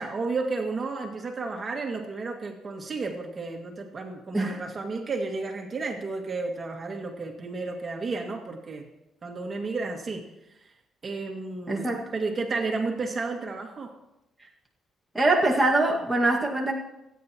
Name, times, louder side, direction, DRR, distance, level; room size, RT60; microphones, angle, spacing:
voice 1, 0.0-8.9 9.2-10.3 11.0-13.9, right 3 dB, 40° right, 2 dB, 2.1 m, -32 dB
voice 2, 11.7-12.1 15.1-16.7, right 2 dB, 10° right, -2 dB, 2.0 m, -23 dB
28.5 x 9.8 x 3.0 m, 0.89 s
cardioid pair, 90°, 0 cm